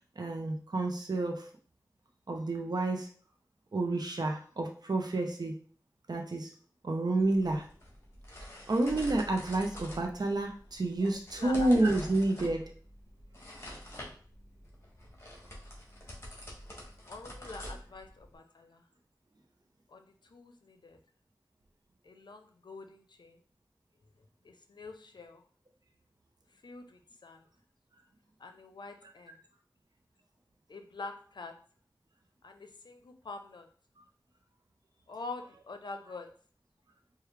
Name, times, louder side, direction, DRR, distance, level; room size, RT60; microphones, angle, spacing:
voice 1, 0.2-1.5 2.3-3.1 3.7-5.6 6.1-6.5 6.8-7.6 8.7-12.7, right 2 dB, 65° right, 2 dB, 0.6 m, -29 dB
sound 1, 7.2-18.4, equal, 35° left, 1.3 m, -46 dB
voice 2, 11.3-12.1 17.1-18.8 19.9-21.0 22.0-23.4 24.4-25.4 26.6-27.5 28.4-29.4 30.7-31.5 32.4-33.7 35.1-36.3, left 3 dB, 90° left, 6 dB, 0.5 m, -46 dB
4.7 x 2.3 x 3.3 m, 0.44 s
wide cardioid pair, 65°, 7 cm